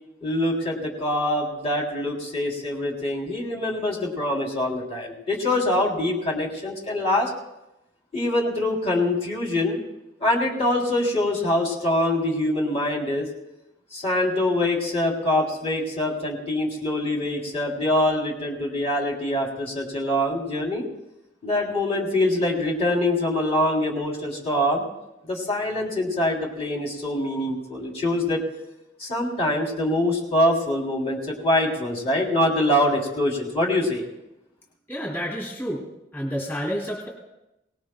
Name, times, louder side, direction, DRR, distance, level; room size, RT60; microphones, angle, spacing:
voice 1, 0.2-7.3 8.1-9.8 10.2-13.3 13.9-20.8 21.4-24.8 25.2-28.4 29.0-34.0, left 1 dB, 35° left, -1 dB, 3.2 m, -24 dB
voice 2, 34.9-35.8 36.1-37.1, equal, 15° left, -3 dB, 2.8 m, -29 dB
25.0 x 18.5 x 2.2 m, 0.90 s
head